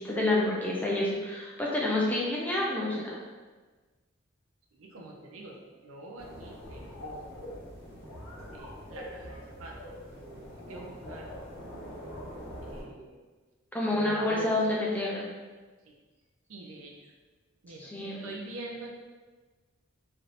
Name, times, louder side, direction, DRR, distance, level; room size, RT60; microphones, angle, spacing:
voice 1, 0.0-3.2 13.7-15.3 17.8-18.3, left 2 dB, 10° left, -5 dB, 0.4 m, -28 dB
voice 2, 4.7-7.4 8.5-9.8 10.3-11.3 12.6-13.2 13.9-14.6 15.8-15.9 16.5-16.9 17.6-19.0, right 2 dB, 75° right, 0 dB, 0.5 m, -44 dB
sound 1, 6.2-12.8, equal, 10° right, 1.2 m, -43 dB
3.2 x 2.6 x 2.5 m, 1.3 s
head